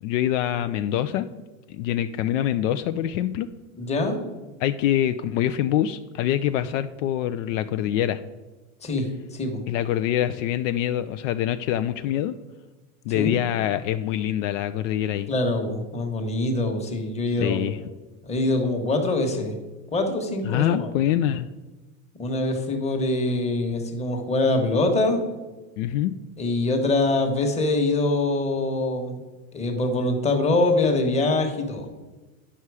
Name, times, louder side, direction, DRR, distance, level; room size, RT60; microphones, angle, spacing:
voice 1, 0.0-1.3 1.7-3.5 4.6-8.2 9.7-12.3 13.1-15.3 17.4-17.8 20.4-21.5 25.8-26.1, left 11 dB, 65° left, 10 dB, 0.5 m, -25 dB
voice 2, 3.8-4.2 8.8-9.1 9.3-9.6 13.1-13.4 15.3-17.6 18.2-19.5 19.9-20.9 22.2-25.2 26.4-29.2 29.5-31.9, left 2 dB, 15° left, 3 dB, 1.2 m, -24 dB
9.9 x 5.7 x 4.7 m, 1.2 s
supercardioid pair, 150°, 41 cm